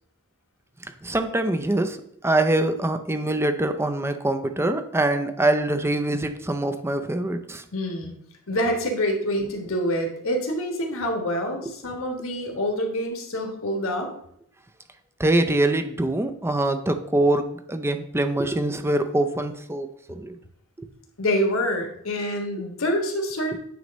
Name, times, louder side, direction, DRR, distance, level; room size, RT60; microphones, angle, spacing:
voice 1, 1.0-2.0 2.2-7.6 11.6-11.7 15.2-20.4 20.8-20.9 23.5-23.6, right 1 dB, 10° right, 8 dB, 0.5 m, -24 dB
voice 2, 7.7-8.1 8.5-14.1 21.2-23.6, equal, 65° left, 3 dB, 1.5 m, -26 dB
9.3 x 3.2 x 5.2 m, 0.69 s
head